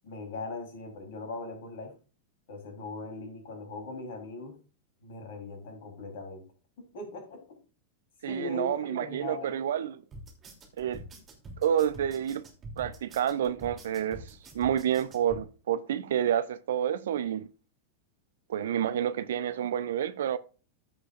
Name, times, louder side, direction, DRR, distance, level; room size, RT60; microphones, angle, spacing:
voice 1, 0.0-1.9 2.5-4.6 5.0-6.5 6.8-7.6 8.3-9.6, left 3 dB, 55° left, 3.7 m, -40 dB
voice 2, 8.2-10.0 10.8-11.0 11.6-12.4 12.8-17.5 18.5-20.4, right 9 dB, 60° right, 0.6 m, -29 dB
sound 1, 10.1-15.4, right 1 dB, 25° right, 3.0 m, -46 dB
14.5 x 6.3 x 2.5 m
figure-of-eight pair, 90°, 0 cm